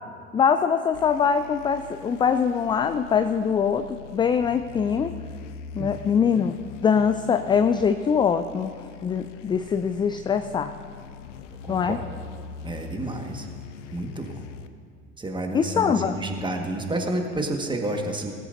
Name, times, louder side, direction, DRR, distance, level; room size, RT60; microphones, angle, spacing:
voice 1, 0.3-5.1 5.8-6.6 6.8-8.7 9.0-10.7 11.7-12.0 15.5-16.2, left 6 dB, 15° left, 9 dB, 0.3 m, -23 dB
sound 1, 0.9-14.7, left 6 dB, 75° left, 0.8 m, -42 dB
voice 2, 11.6-12.0 12.6-13.5 13.9-14.4 15.2-18.3, right 1 dB, 10° right, 3 dB, 1.7 m, -30 dB
19.5 x 13.5 x 2.7 m, 2.1 s
figure-of-eight pair, 70°, 37 cm